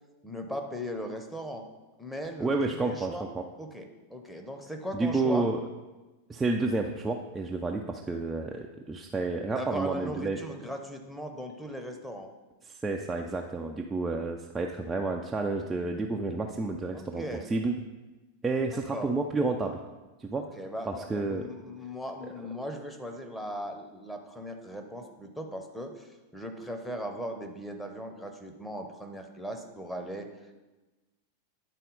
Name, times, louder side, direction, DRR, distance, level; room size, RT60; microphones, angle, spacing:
voice 1, 0.2-1.7 2.0-3.3 3.6-5.5 9.5-12.3 16.9-17.5 18.9-19.1 20.3-30.6, equal, 5° left, 3 dB, 0.9 m, -38 dB
voice 2, 2.4-3.4 4.9-5.6 6.3-10.4 12.7-17.2 17.5-17.7 18.4-19.8 20.2-20.5 20.8-21.5, right 3 dB, 15° right, 1 dB, 0.5 m, -30 dB
10.0 x 4.1 x 4.0 m, 1.2 s
figure-of-eight pair, 90°, 0 cm